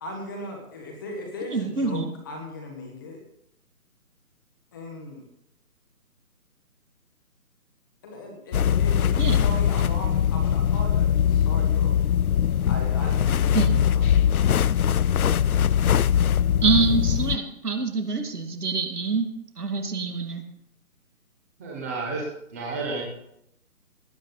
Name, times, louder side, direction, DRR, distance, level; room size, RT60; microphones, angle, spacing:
voice 1, 0.0-3.2 4.7-5.2 8.0-12.0 12.7-14.1, left 1 dB, 15° left, 1 dB, 1.3 m, -37 dB
voice 2, 1.5-2.1 9.2-9.4 13.5-13.8 16.6-19.3 19.6-20.4, right 4 dB, 80° right, 5 dB, 2.5 m, -25 dB
sound 1, 8.5-17.4, left 9 dB, 70° left, 0.6 m, -21 dB
voice 3, 21.6-23.0, right 3 dB, 10° right, -2 dB, 1.1 m, -31 dB
18.5 x 8.8 x 4.0 m, 0.77 s
hypercardioid pair, 165°, 45 cm